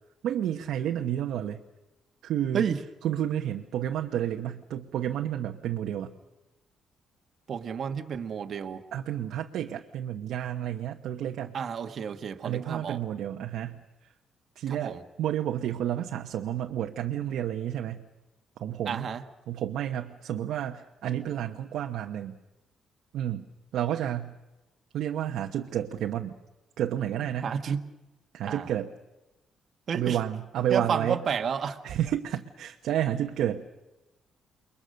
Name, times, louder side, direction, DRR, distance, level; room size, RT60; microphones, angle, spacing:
voice 1, 0.2-1.6 2.2-2.7 3.0-6.1 8.9-11.5 12.4-14.1 14.6-18.1 18.6-19.1 19.5-22.4 23.1-23.4 23.7-24.3 24.9-26.3 26.8-27.5 28.3-28.9 29.9-31.2 31.8-33.6, right 11 dB, 80° right, 1.0 m, -30 dB
voice 2, 7.5-8.8 11.5-13.0 14.7-15.0 18.9-19.2 27.4-27.8 28.4-28.7 29.9-30.2 30.7-31.8, right 7 dB, 55° right, 1.3 m, -31 dB
29.0 x 22.0 x 6.5 m
cardioid pair, 90°, 0 cm